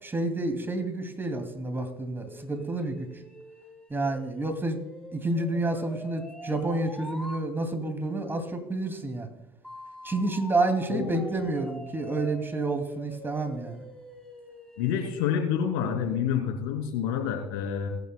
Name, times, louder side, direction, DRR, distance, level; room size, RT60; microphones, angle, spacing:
voice 1, 0.0-3.1 3.9-4.8 5.1-9.3 10.0-13.8, right 2 dB, 15° right, 6 dB, 2.5 m, -29 dB
sound 1, 2.2-7.5 9.6-15.5, left 1 dB, 5° left, 3.4 m, -45 dB
voice 2, 10.9-11.3 14.8-17.9, left 8 dB, 80° left, 4 dB, 2.8 m, -28 dB
24.0 x 9.3 x 2.3 m, 0.94 s
hypercardioid pair, 75°, 12 cm